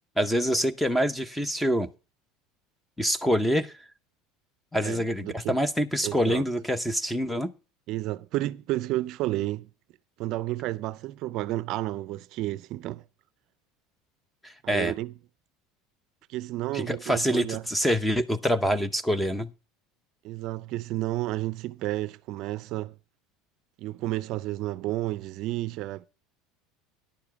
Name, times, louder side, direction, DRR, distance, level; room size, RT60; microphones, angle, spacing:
voice 1, 0.2-1.9 3.0-3.7 4.7-7.5 14.4-14.9 16.7-19.5, equal, 5° left, 0.7 m, -26 dB
voice 2, 4.8-5.5 6.0-6.4 7.9-9.7 10.2-13.0 14.6-15.1 16.3-17.6 20.2-22.9 23.8-26.1, right 16 dB, 50° right, 0.5 m, -31 dB
10.5 x 7.0 x 5.9 m
cardioid pair, 145°, 0 cm